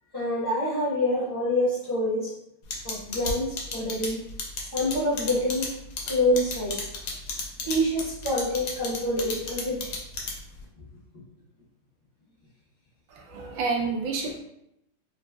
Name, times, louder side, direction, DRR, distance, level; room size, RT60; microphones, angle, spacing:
voice 1, 0.1-2.3 2.8-4.2 4.7-5.7 6.1-6.9 7.6-9.9, left 1 dB, 40° left, -9 dB, 0.5 m, -26 dB
sound 1, 2.7-10.6, left 4 dB, 70° left, 1.3 m, -32 dB
voice 2, 13.1-14.3, right 4 dB, 75° right, 1 dB, 1.3 m, -29 dB
4.0 x 2.6 x 2.2 m, 0.80 s
omnidirectional pair, 2.3 m